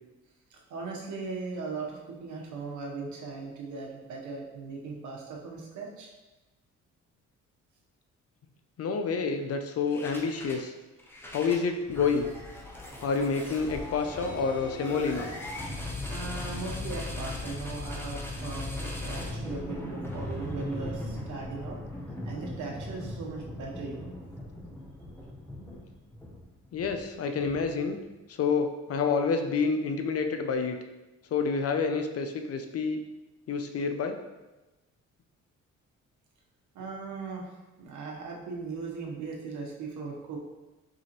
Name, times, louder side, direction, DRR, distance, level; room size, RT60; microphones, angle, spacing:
voice 1, 0.5-6.1 16.1-21.8 22.3-24.1 36.7-40.4, right 4 dB, 75° right, -1 dB, 1.1 m, -38 dB
voice 2, 8.8-10.7 11.3-12.3 13.0-15.3 26.7-28.0 28.4-30.8 31.3-33.0 33.5-34.2, left 5 dB, 50° left, 6 dB, 0.6 m, -28 dB
sound 1, 9.9-10.7 11.0-27.9, left 1 dB, 5° left, 0.9 m, -38 dB
4.8 x 3.7 x 3.0 m, 1.1 s
cardioid pair, 90°, 30 cm